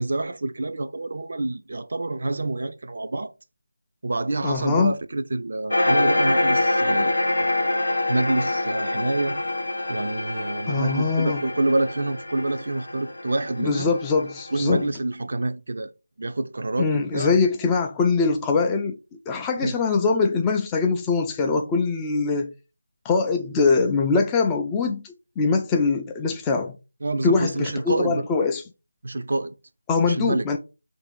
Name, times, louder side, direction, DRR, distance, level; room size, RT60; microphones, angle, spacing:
voice 1, 0.0-3.3 4.0-7.2 8.1-9.4 9.9-13.9 14.5-15.9 16.2-17.4 19.6-19.8 27.0-28.3 29.0-29.5 30.0-30.5, right 2 dB, 55° right, 0.4 m, -27 dB
voice 2, 4.4-4.9 10.7-11.4 13.6-14.8 16.8-19.0 19.3-22.5 23.0-26.8 27.2-28.6 29.9-30.6, left 4 dB, 10° left, 0.3 m, -22 dB
sound 1, 5.7-14.7, left 2 dB, 80° left, 0.6 m, -25 dB
3.2 x 2.6 x 4.4 m
figure-of-eight pair, 165°, 0 cm